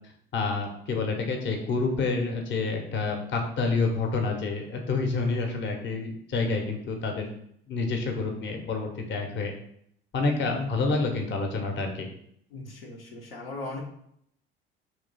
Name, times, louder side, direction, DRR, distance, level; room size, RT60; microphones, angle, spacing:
voice 1, 0.3-7.3 7.7-9.5 10.1-12.1, left 3 dB, 40° left, 3 dB, 0.9 m, -28 dB
voice 2, 5.2-5.5 10.5-11.1 12.5-13.8, left 2 dB, 75° left, -2 dB, 0.8 m, -39 dB
3.1 x 3.0 x 4.0 m, 0.70 s
figure-of-eight pair, 60°, 29 cm